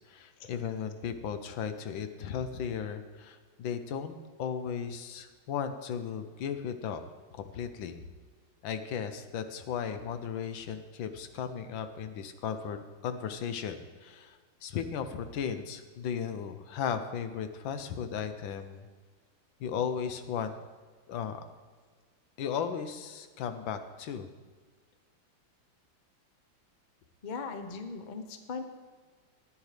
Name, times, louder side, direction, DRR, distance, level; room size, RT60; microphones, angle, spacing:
voice 1, 0.0-7.0 7.3-8.0 8.6-18.9 19.6-20.5 21.1-21.4 22.4-24.3, left 7 dB, 80° left, 9 dB, 1.5 m, -36 dB
voice 2, 27.2-28.6, left 4 dB, 50° left, 6 dB, 0.5 m, -39 dB
14.5 x 10.0 x 3.3 m, 1.5 s
omnidirectional pair, 2.1 m